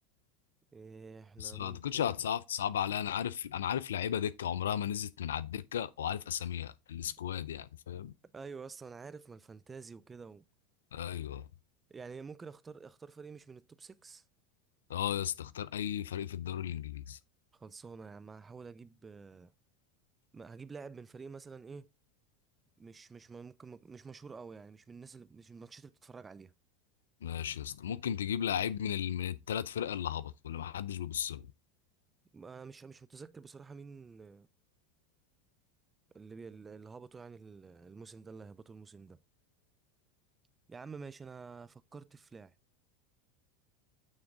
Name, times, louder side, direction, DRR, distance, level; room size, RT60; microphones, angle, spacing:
voice 1, 0.7-2.1 8.3-10.4 11.9-14.2 17.5-19.5 20.3-21.9 22.8-26.5 32.3-34.5 36.1-39.2 40.7-42.5, right 5 dB, 20° right, 0.5 m, -49 dB
voice 2, 1.4-8.1 10.9-11.5 14.9-17.2 27.2-31.5, left 9 dB, 80° left, 0.4 m, -35 dB
8.7 x 3.6 x 3.6 m
hypercardioid pair, 80°, 0 cm